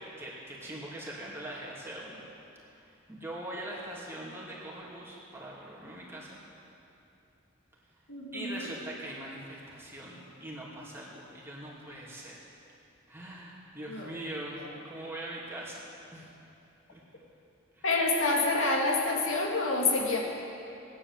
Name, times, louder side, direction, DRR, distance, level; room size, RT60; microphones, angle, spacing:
voice 1, 0.0-2.2 2.8-6.4 8.3-12.4 13.1-14.6 14.8-15.9 16.1-16.3 16.9-17.0 17.8-17.9, right 1 dB, 10° right, -5 dB, 2.6 m, -42 dB
voice 2, 8.1-8.7 13.9-14.1 17.8-20.2, left 3 dB, 80° left, -1 dB, 2.3 m, -27 dB
18.5 x 10.0 x 7.4 m, 2.8 s
head